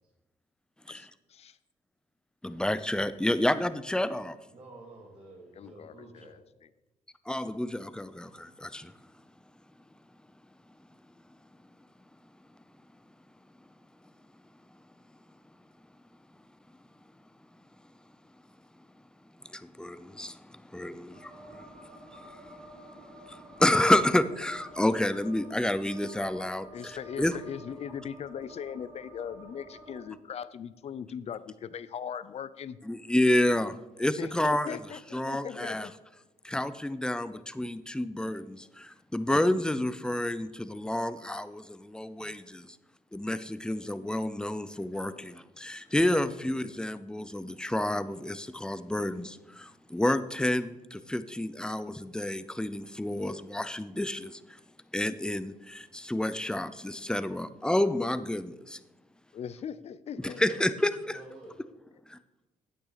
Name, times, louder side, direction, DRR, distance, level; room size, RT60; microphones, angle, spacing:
voice 1, 0.9-1.6 5.5-6.7 26.7-32.8 34.2-35.9 45.0-45.3 45.7-45.8 59.3-60.4 60.8-60.9, left 8 dB, 50° left, 16 dB, 0.5 m, -40 dB
voice 2, 2.4-4.4 7.3-8.9 19.5-21.7 22.1-22.6 23.1-26.7 27.2-27.3 32.9-34.8 35.1-35.9 36.4-42.7 43.1-54.4 54.9-58.8 60.4-60.7 61.1-61.2 62.1-62.2, left 1 dB, 5° left, 13 dB, 0.5 m, -29 dB
voice 3, 4.5-6.4 60.3-60.6 61.1-61.6, right 2 dB, 55° right, -4 dB, 2.7 m, -49 dB
sound 1, 21.1-30.0, right 1 dB, 90° right, 3.5 m, -50 dB
9.0 x 8.9 x 4.1 m, 1.0 s
cardioid pair, 85°, 14 cm